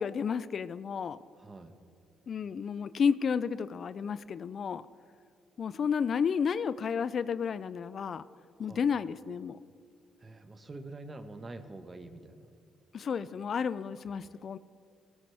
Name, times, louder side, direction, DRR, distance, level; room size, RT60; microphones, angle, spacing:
voice 1, 0.0-1.2 2.3-4.9 5.6-8.2 8.6-9.6 12.9-14.6, left 6 dB, 55° left, 16 dB, 0.4 m, -31 dB
voice 2, 1.4-1.7 8.6-8.9 10.2-12.5, right 2 dB, 35° right, 8 dB, 1.4 m, -46 dB
18.5 x 18.5 x 3.5 m, 2.3 s
supercardioid pair, 60°, 0 cm